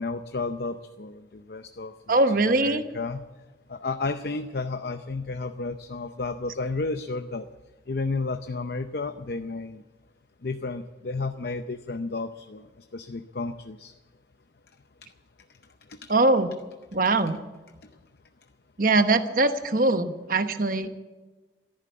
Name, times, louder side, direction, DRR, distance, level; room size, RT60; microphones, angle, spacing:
voice 1, 0.0-3.2 3.7-7.5 7.9-9.8 10.4-13.9 15.9-16.1 17.8-17.9, left 3 dB, 55° left, 9 dB, 0.6 m, -32 dB
voice 2, 2.1-2.8 16.1-16.5 16.9-17.4 18.8-20.9, right 2 dB, 50° right, 9 dB, 1.0 m, -22 dB
13.5 x 11.5 x 8.5 m, 1.2 s
head